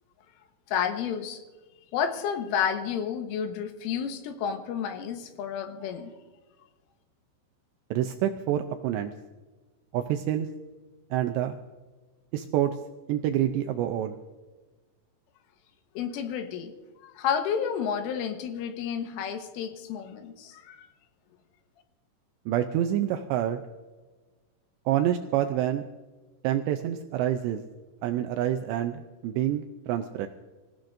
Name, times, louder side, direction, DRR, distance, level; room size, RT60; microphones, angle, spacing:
voice 1, 0.7-1.4 1.9-6.1 16.0-16.7 17.0-20.9, left 7 dB, 85° left, 6 dB, 3.7 m, -31 dB
voice 2, 7.9-9.1 9.9-10.5 11.1-11.6 12.3-12.8 13.1-14.2 22.5-23.6 24.9-25.8 26.4-27.6 28.0-30.3, right 11 dB, 85° right, 6 dB, 2.5 m, -27 dB
25.5 x 16.0 x 2.6 m, 1.3 s
omnidirectional pair, 5.7 m